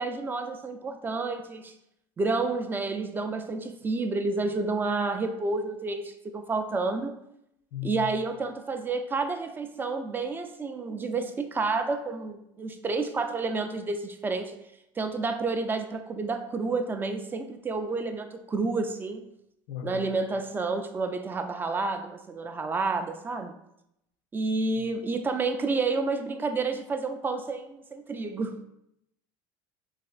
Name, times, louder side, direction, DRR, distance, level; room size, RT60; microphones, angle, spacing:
voice 1, 0.0-1.7 2.2-7.1 7.8-14.6 15.0-19.3 19.8-23.5 24.3-28.6, right 3 dB, 20° right, 0.3 m, -30 dB
voice 2, 7.7-8.1 19.7-20.1 24.8-24.9, left 12 dB, 70° left, 0.5 m, -37 dB
4.0 x 2.5 x 2.3 m
supercardioid pair, 100°, 11 cm